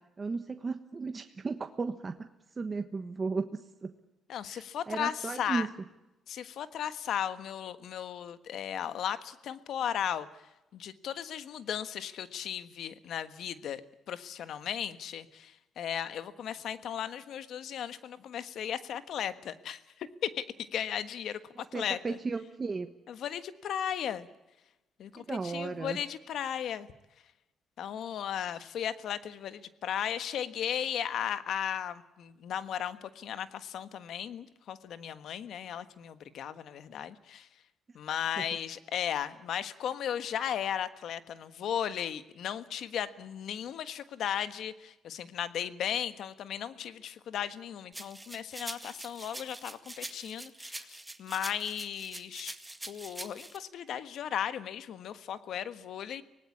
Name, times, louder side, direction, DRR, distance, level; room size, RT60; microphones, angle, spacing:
voice 1, 0.2-2.1 2.6-3.9 4.5-5.7 21.6-22.9 25.1-26.0 38.4-38.5, right 4 dB, 30° right, 7 dB, 1.3 m, -35 dB
voice 2, 4.3-5.7 6.3-10.3 10.7-13.8 14.1-19.8 20.2-22.2 23.1-24.3 25.0-26.9 27.8-37.5 37.9-52.5 52.9-56.2, left 9 dB, 70° left, 12 dB, 1.4 m, -36 dB
sound 1, 47.9-53.6, right 1 dB, 10° right, 1.9 m, -44 dB
25.0 x 18.5 x 8.6 m, 1.0 s
cardioid pair, 90°, 0 cm